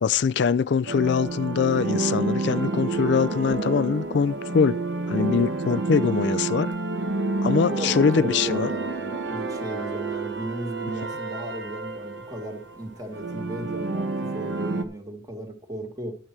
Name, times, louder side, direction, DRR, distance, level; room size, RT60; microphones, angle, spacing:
voice 1, 0.0-4.8 5.1-6.7 7.4-8.7, left 6 dB, 60° left, 0.4 m, -23 dB
sound 1, 0.9-14.8, right 3 dB, 70° right, 1.1 m, -29 dB
voice 2, 7.7-16.2, right 1 dB, 20° right, 1.6 m, -36 dB
11.0 x 8.6 x 4.4 m
head